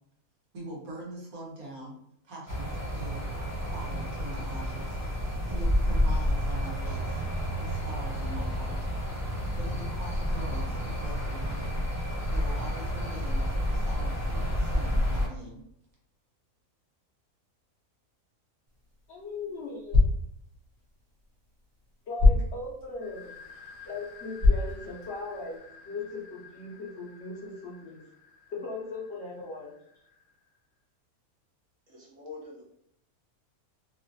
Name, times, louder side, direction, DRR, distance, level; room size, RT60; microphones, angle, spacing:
voice 1, 0.5-2.0 2.2-3.3 3.7-5.0 5.5-7.2 7.6-8.8 9.6-11.8 12.3-15.6, right 1 dB, 70° right, -2 dB, 1.3 m, -43 dB
sound 1, 2.5-15.3, equal, 15° left, 0.8 m, -30 dB
sound 2, 18.7-25.6, left 2 dB, 50° right, 1.1 m, -28 dB
voice 2, 19.1-20.1 22.1-23.4 23.9-28.0 28.5-29.7, left 3 dB, 60° left, -4 dB, 0.8 m, -38 dB
sound 3, 23.0-30.5, left 5 dB, 80° left, 1.1 m, -52 dB
voice 3, 31.9-32.6, left 3 dB, 30° right, -4 dB, 0.7 m, -46 dB
3.0 x 2.4 x 2.6 m, 0.74 s
omnidirectional pair, 1.6 m